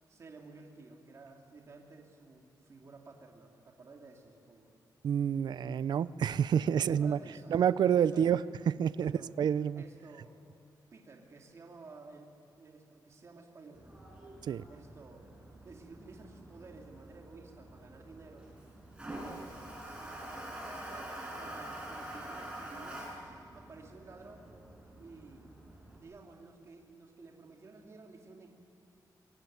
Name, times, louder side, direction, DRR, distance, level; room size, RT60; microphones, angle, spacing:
voice 1, 0.1-4.7 6.8-8.2 9.0-9.3 9.7-10.3 10.9-14.0 14.7-15.3 15.6-18.5 19.1-19.6 20.0-20.3 20.6-23.2 23.5-24.5 25.0-25.5 26.0-28.6, right 3 dB, 40° right, 1 dB, 2.8 m, -53 dB
voice 2, 5.0-7.2 7.5-8.4 8.7-9.1 9.4-9.8 14.4-14.6, right 8 dB, 70° right, 17 dB, 0.6 m, -28 dB
Toilet flush, 13.7-26.0, right 1 dB, 10° right, 5.8 m, -46 dB
24.0 x 22.0 x 9.5 m, 2.5 s
wide cardioid pair, 160°, 8 cm